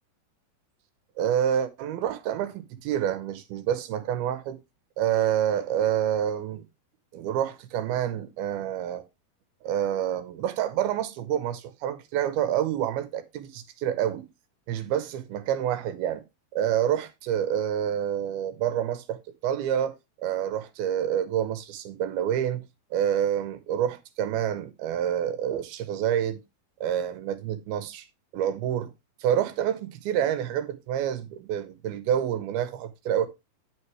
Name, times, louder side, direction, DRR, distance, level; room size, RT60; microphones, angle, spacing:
voice 1, 1.2-4.6 5.0-6.6 7.1-9.0 9.6-14.3 14.7-16.2 16.5-19.9 20.2-22.6 22.9-26.4 26.8-28.1 28.3-28.9 29.2-33.3, right 10 dB, 80° right, 2.8 m, -28 dB
9.0 x 8.0 x 3.2 m
omnidirectional pair, 4.5 m